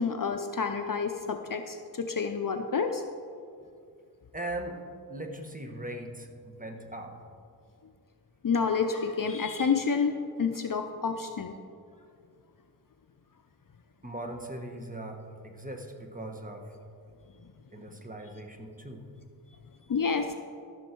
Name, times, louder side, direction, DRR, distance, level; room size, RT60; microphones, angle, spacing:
voice 1, 0.0-3.0 8.4-11.5 19.9-20.3, left 5 dB, 60° left, 7 dB, 0.5 m, -29 dB
voice 2, 4.3-4.8 5.1-7.1 14.0-16.7 17.7-19.0, right 1 dB, 20° right, 3 dB, 1.3 m, -39 dB
14.0 x 6.3 x 4.5 m, 2.3 s
wide cardioid pair, 40°, 39 cm